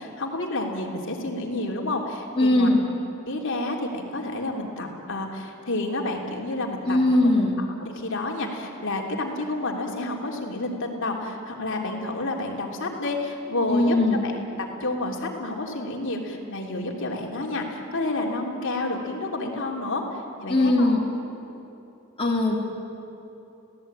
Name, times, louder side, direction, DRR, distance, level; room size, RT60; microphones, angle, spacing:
voice 1, 0.0-2.7 3.3-7.0 7.8-14.0 14.2-14.4 14.8-20.9, left 2 dB, 60° left, 0 dB, 3.2 m, -30 dB
voice 2, 2.4-2.8 6.8-7.5 13.7-14.3 20.5-21.1 22.2-22.5, left 2 dB, 25° left, -2 dB, 2.6 m, -20 dB
29.5 x 17.5 x 8.9 m, 2.9 s
head